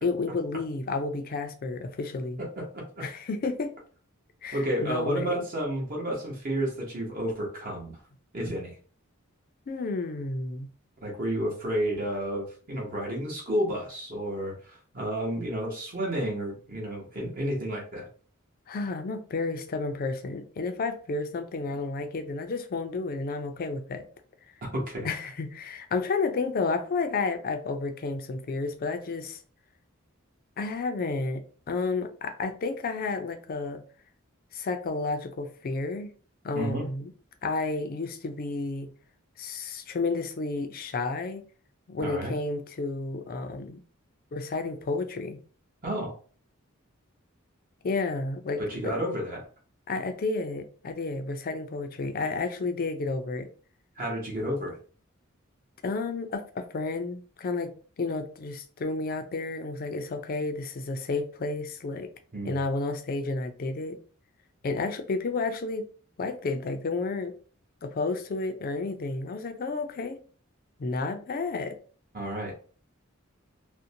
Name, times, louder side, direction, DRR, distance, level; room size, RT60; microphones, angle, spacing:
voice 1, 0.0-2.4 3.0-3.7 4.4-5.4 9.7-10.7 18.7-24.0 25.0-29.4 30.6-31.4 31.7-33.8 34.5-36.1 36.4-37.1 37.4-38.9 39.4-41.4 41.9-43.8 44.3-45.4 47.8-48.9 49.9-53.5 55.8-62.1 62.4-64.0 64.6-65.9 66.2-67.3 67.8-70.2 70.8-71.8, left 3 dB, 45° left, 0.4 m, -31 dB
voice 2, 2.4-3.1 4.5-8.0 8.3-8.7 11.0-18.1 24.7-25.1 36.5-36.8 42.0-42.3 45.8-46.1 48.6-49.4 54.0-54.8 62.3-62.6 72.1-72.5, equal, 45° right, 0.8 m, -31 dB
2.5 x 2.1 x 2.6 m
head